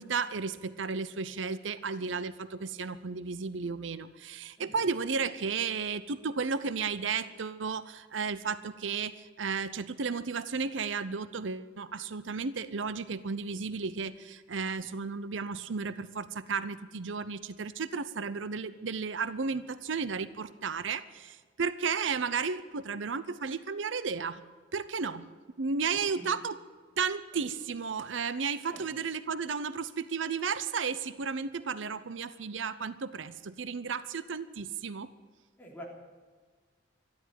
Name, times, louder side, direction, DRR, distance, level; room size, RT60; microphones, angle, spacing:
voice 1, 0.0-24.4 24.7-25.3 25.6-26.6 27.0-35.1, right 5 dB, 80° right, 14 dB, 0.7 m, -33 dB
voice 2, 4.6-4.8 26.1-26.3 28.6-28.9 35.6-35.8, equal, 10° left, -2 dB, 3.4 m, -46 dB
13.0 x 12.5 x 9.1 m, 1.5 s
head